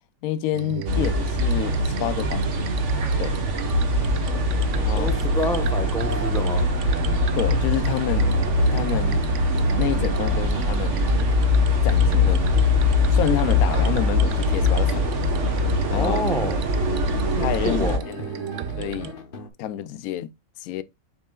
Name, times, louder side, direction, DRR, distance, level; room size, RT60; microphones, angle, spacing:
voice 1, 0.2-2.4 3.2-3.3 4.7-5.1 7.4-8.3 8.7-9.3 9.8-11.0 11.8-12.6 13.1-15.0 15.9-16.3 17.4-18.2 18.8-19.1 19.6-20.3 20.6-20.8, left 12 dB, 70° left, 0.9 m, -28 dB
sound 1, 0.5-19.1, right 9 dB, 65° right, 0.8 m, -34 dB
sound 2, 0.9-18.0, left 2 dB, 45° right, 1.4 m, -22 dB
sound 3, 3.6-19.5, left 5 dB, 40° left, 0.9 m, -39 dB
voice 2, 4.9-6.7 15.9-16.6 17.3-18.0, left 1 dB, 5° left, 0.7 m, -28 dB
7.5 x 5.4 x 2.3 m
omnidirectional pair, 1.8 m